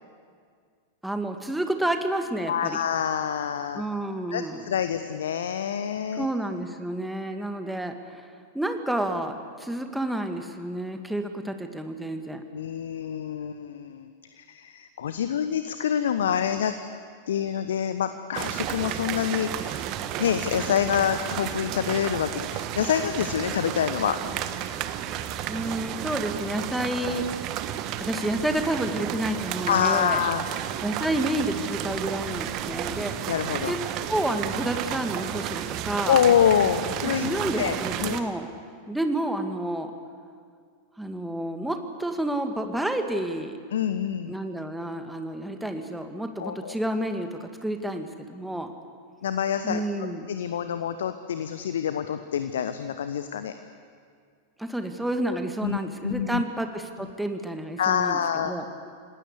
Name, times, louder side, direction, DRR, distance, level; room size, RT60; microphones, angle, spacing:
voice 1, 1.0-2.8 3.7-4.7 6.1-8.3 8.5-12.4 25.5-27.3 28.0-30.2 30.8-33.2 33.7-33.8 34.1-36.2 37.0-38.5 38.9-39.9 41.0-43.6 44.3-48.7 49.6-50.3 54.6-58.2 58.4-58.7, right 1 dB, 5° right, 6 dB, 2.1 m, -30 dB
voice 2, 2.5-3.8 4.3-6.3 12.5-14.1 14.3-16.7 17.3-19.9 20.2-24.2 29.7-30.4 33.3-33.8 36.1-38.3 43.7-44.3 46.4-46.8 49.2-49.8 50.3-53.5 55.6-56.4 57.0-57.1 57.8-58.5, left 9 dB, 60° left, 10 dB, 1.0 m, -26 dB
sound 1, 18.3-38.2, right 11 dB, 40° right, 1.4 m, -32 dB
28.5 x 19.0 x 8.3 m, 2.1 s
figure-of-eight pair, 90°, 0 cm